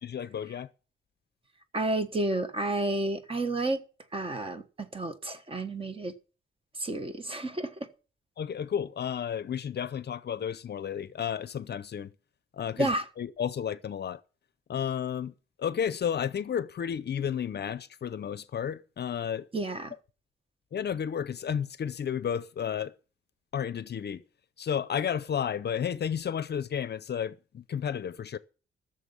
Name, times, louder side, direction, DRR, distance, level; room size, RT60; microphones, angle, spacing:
voice 1, 0.0-0.7 8.4-12.1 12.5-14.2 14.7-19.5 20.7-22.9 23.5-24.2 24.6-28.4, left 8 dB, 50° left, 0.6 m, -32 dB
voice 2, 1.7-3.8 4.1-6.1 6.8-7.7 12.8-13.0 19.5-19.9, right 2 dB, 25° right, 1.3 m, -30 dB
15.0 x 6.9 x 7.0 m
wide cardioid pair, 145°, 21 cm